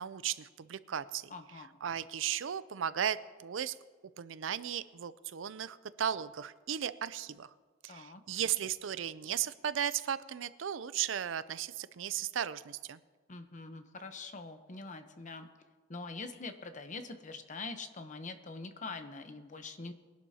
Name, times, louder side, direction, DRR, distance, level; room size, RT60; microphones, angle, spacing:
voice 1, 0.0-1.3 1.8-3.7 4.2-7.5 7.8-13.0, right 9 dB, 85° right, 16 dB, 0.5 m, -36 dB
voice 2, 1.3-1.7 7.9-8.2 13.3-15.5 15.9-19.9, left 3 dB, 40° left, 8 dB, 0.9 m, -44 dB
22.0 x 11.5 x 2.8 m, 1.4 s
head